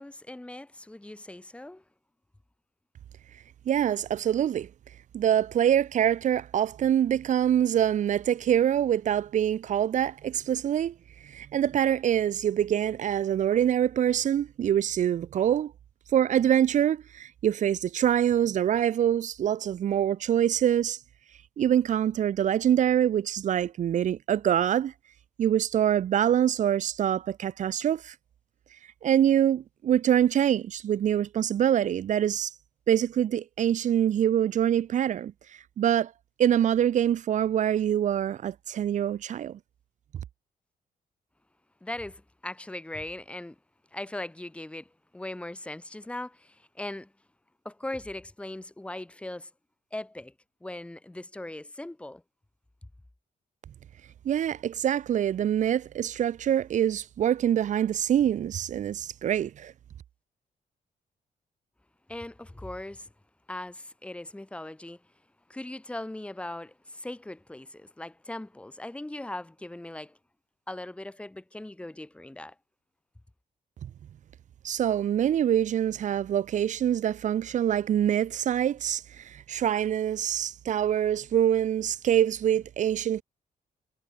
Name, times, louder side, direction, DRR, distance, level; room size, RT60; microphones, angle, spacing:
voice 1, 0.0-1.8 41.8-43.6 43.9-47.1 47.7-49.5 49.9-50.3 50.6-52.2 62.1-63.1 63.5-65.0 65.5-70.2 70.7-72.6, left 1 dB, 5° left, 3.7 m, -39 dB
voice 2, 3.7-4.7 5.1-10.9 11.2-15.7 16.1-21.0 21.6-24.9 25.4-28.1 29.0-32.5 32.9-35.3 35.8-36.1 36.4-39.6 54.2-59.7 73.8-73.9 74.6-83.2, right 10 dB, 55° right, 0.7 m, -25 dB
wide cardioid pair, 160°, 15 cm